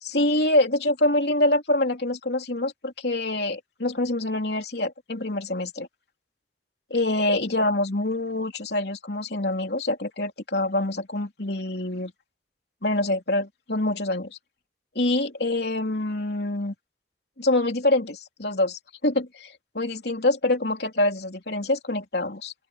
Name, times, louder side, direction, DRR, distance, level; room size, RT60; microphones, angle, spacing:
voice 1, 0.0-5.9 6.9-12.1 12.8-14.3 14.9-16.7 17.4-22.5, left 1 dB, 60° left, 3.4 m, -25 dB
head